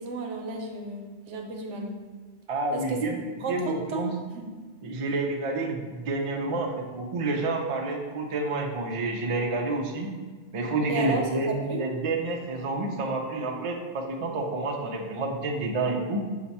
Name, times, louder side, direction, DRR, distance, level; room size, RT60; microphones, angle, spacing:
voice 1, 0.0-2.0 2.7-4.5 10.9-11.8, right 2 dB, 85° right, 2 dB, 1.0 m, -33 dB
voice 2, 2.5-3.2 3.5-4.1 4.8-10.1 10.5-16.2, right 2 dB, 50° right, 1 dB, 0.4 m, -29 dB
5.8 x 2.2 x 4.0 m, 1.4 s
omnidirectional pair, 1.2 m